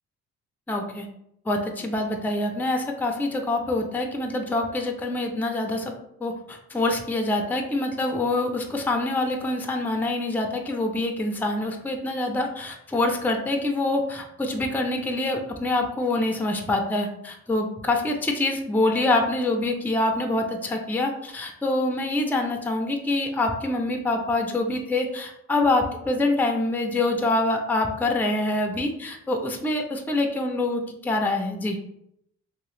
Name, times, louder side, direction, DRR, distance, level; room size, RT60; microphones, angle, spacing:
voice 1, 0.7-1.1 1.5-5.9 6.2-31.8, left 2 dB, 5° left, 3 dB, 0.5 m, -25 dB
3.0 x 2.8 x 3.1 m, 0.77 s
cardioid pair, 90°, 30 cm